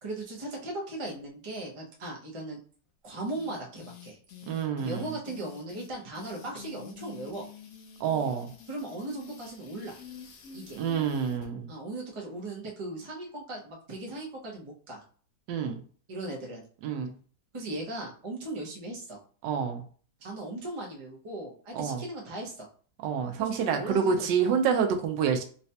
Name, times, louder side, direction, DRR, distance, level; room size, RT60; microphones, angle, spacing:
voice 1, 0.0-2.6 3.0-4.2 4.8-7.5 8.7-10.0 10.5-10.8 11.7-15.0 16.1-16.6 17.5-19.2 20.2-22.7 23.4-24.6, right 2 dB, 40° right, -2 dB, 0.4 m, -38 dB
sound 1, 3.2-11.5, left 6 dB, 65° left, 0.9 m, -48 dB
voice 2, 4.5-5.1 8.0-8.5 10.7-11.7 15.5-15.8 16.8-17.1 19.4-19.8 21.7-22.0 23.0-25.4, right 7 dB, 85° right, 5 dB, 1.3 m, -28 dB
4.0 x 2.2 x 2.7 m, 0.44 s
omnidirectional pair, 1.9 m